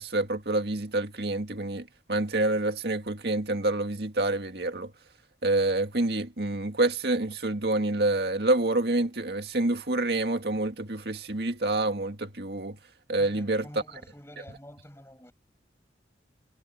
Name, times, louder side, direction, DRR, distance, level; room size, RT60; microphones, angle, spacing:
voice 1, 0.0-4.9 5.4-12.8 13.1-13.6, right 2 dB, 60° right, 2.1 m, -27 dB
voice 2, 13.2-15.3, equal, 15° left, 6.1 m, -48 dB
head